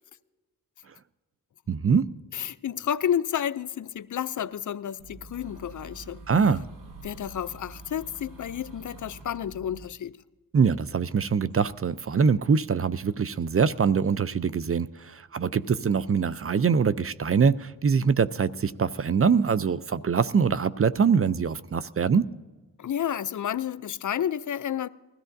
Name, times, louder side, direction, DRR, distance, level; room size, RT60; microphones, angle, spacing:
voice 1, 1.7-2.1 6.3-6.6 10.5-22.3, right 6 dB, 40° right, 0.5 m, -23 dB
voice 2, 2.3-6.2 7.0-10.2 22.8-24.9, left 9 dB, 55° left, 0.4 m, -30 dB
sound 1, 5.0-9.9, right 2 dB, 60° right, 1.3 m, -46 dB
20.5 x 13.5 x 2.6 m
cardioid pair, 45°, 35 cm